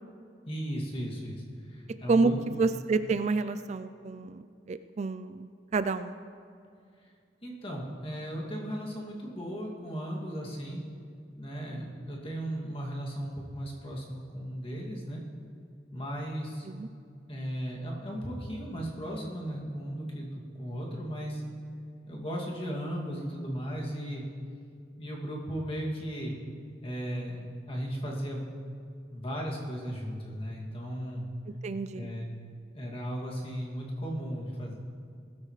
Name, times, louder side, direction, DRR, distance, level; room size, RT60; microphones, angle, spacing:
voice 1, 0.5-1.4 1.7-2.4 7.4-10.8 11.4-15.2 15.9-16.7 17.3-21.4 22.1-24.3 25.0-26.4 26.8-28.5 29.1-31.3 31.9-32.3 32.7-34.7, equal, 35° left, -3 dB, 2.4 m, -36 dB
voice 2, 2.6-6.2 16.7-16.9 31.6-32.1, right 3 dB, 40° right, 11 dB, 0.3 m, -29 dB
20.0 x 13.0 x 3.3 m, 2.4 s
head